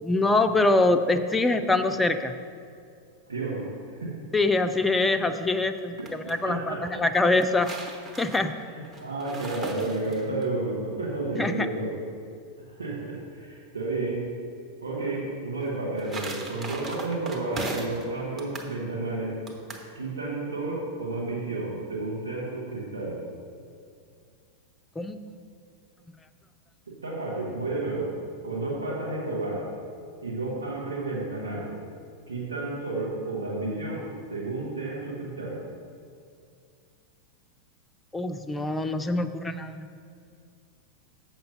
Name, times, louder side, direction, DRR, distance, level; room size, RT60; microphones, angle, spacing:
voice 1, 0.0-2.3 4.3-7.7 8.2-8.5 11.3-11.7 25.0-25.2 38.1-40.0, left 2 dB, 10° left, 8 dB, 0.4 m, -24 dB
voice 2, 3.3-3.7 4.0-4.1 6.4-7.0 8.7-12.0 12.6-14.3 14.8-19.4 19.9-23.2 26.9-28.1 28.4-29.7 30.2-31.7 32.3-34.0 34.3-35.6, right 2 dB, 75° right, -4 dB, 1.6 m, -31 dB
sound 1, 5.8-6.4 7.1-10.4 15.6-18.1 18.4-18.7 19.5-19.9, right 2 dB, 25° right, 1.0 m, -38 dB
7.8 x 5.9 x 5.3 m, 2.3 s
figure-of-eight pair, 90°, 0 cm